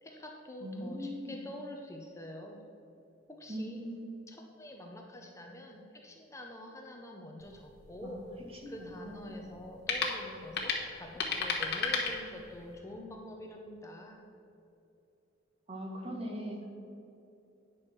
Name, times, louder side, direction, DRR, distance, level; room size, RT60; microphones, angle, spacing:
voice 1, 0.0-2.6 3.4-3.9 4.3-8.2 8.7-14.2, left 1 dB, 15° left, 1 dB, 0.6 m, -46 dB
voice 2, 0.6-1.3 3.5-4.1 8.0-8.1 8.6-8.7 9.0-9.4 15.7-16.6, equal, 30° right, 1 dB, 1.3 m, -40 dB
sound 1, 7.4-12.8, left 5 dB, 60° left, 1.2 m, -36 dB
9.4 x 6.1 x 4.5 m, 2.8 s
head